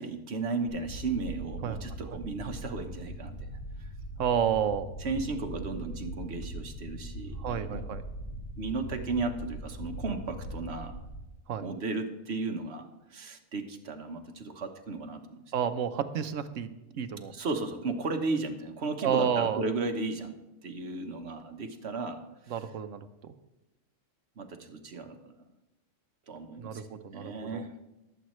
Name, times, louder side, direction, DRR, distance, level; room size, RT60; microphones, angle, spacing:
voice 1, 0.0-3.5 3.8-3.9 5.0-7.9 8.6-11.0 11.6-15.4 17.3-22.5 24.4-25.3 26.3-26.9 27.1-27.7, right 3 dB, 55° right, 5 dB, 1.4 m, -35 dB
sound 1, 0.7-11.2, right 1 dB, 40° left, 2.5 m, -41 dB
voice 2, 4.2-4.9 7.4-8.0 11.5-11.6 15.5-16.7 16.9-17.3 19.0-19.6 22.5-23.3 26.6-27.6, right 8 dB, 75° right, 10 dB, 1.1 m, -30 dB
21.0 x 8.1 x 3.2 m, 1.0 s
omnidirectional pair, 1.3 m